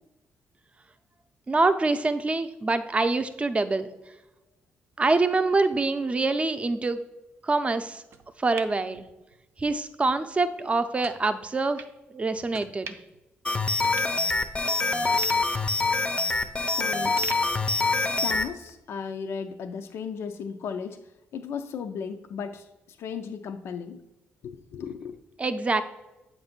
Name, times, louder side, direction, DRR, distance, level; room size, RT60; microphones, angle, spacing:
voice 1, 1.5-3.9 5.0-7.0 7.4-8.0 8.4-9.1 9.6-11.8 12.1-13.0 25.4-25.8, right 3 dB, 30° right, 9 dB, 0.6 m, -25 dB
sound 1, 8.1-9.7 10.1-10.2 11.0-11.2 11.8-11.9 12.5-13.2 13.5-13.6 13.8-14.7 15.1-16.7 17.2-18.3 18.7-18.8, right 5 dB, 70° right, 0.6 m, -44 dB
sound 2, 13.4-18.5, left 3 dB, 25° left, 0.6 m, -25 dB
voice 2, 16.7-17.1 18.2-21.0 21.3-24.0 24.4-25.2, left 6 dB, 70° left, 7 dB, 0.4 m, -35 dB
7.7 x 2.6 x 5.8 m, 0.96 s
cardioid pair, 70°, 4 cm